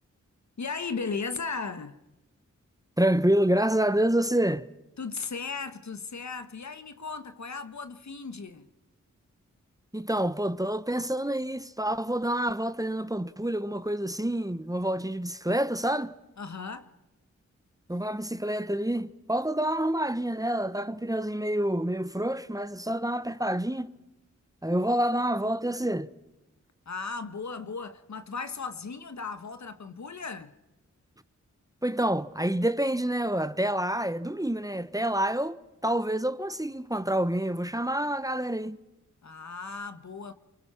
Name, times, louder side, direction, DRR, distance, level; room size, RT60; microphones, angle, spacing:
voice 1, 0.6-2.0 5.0-8.7 16.4-16.9 26.8-30.5 39.2-40.3, left 4 dB, 60° left, 1.4 m, -36 dB
voice 2, 3.0-4.7 9.9-16.1 17.9-23.9 24.6-26.1 31.8-38.8, right 1 dB, 10° right, 1.1 m, -28 dB
28.0 x 24.0 x 5.8 m
cardioid pair, 45°, 31 cm